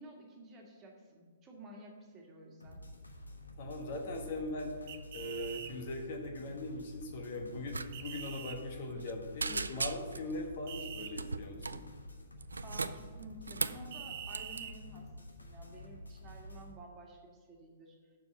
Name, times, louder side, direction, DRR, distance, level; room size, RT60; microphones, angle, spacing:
voice 1, 0.0-2.8 12.6-15.1 15.4-18.0, right 1 dB, 25° right, 0 dB, 1.8 m, -52 dB
sound 1, 2.6-16.7, left 1 dB, 85° left, 1.2 m, -50 dB
voice 2, 3.6-4.7 5.1-11.8, left 1 dB, 50° left, 2 dB, 1.4 m, -40 dB
sound 2, 4.9-5.7 7.9-8.6 10.7-11.1 13.9-14.7, right 9 dB, 45° right, 0.7 m, -44 dB
sound 3, 7.7-7.9 8.1-8.3 8.7-9.1 9.4-10.3 11.1-11.9 12.4-13.9 14.3-14.6, right 3 dB, 80° right, 0.4 m, -37 dB
7.0 x 6.2 x 7.2 m, 1.5 s
figure-of-eight pair, 120°, 0 cm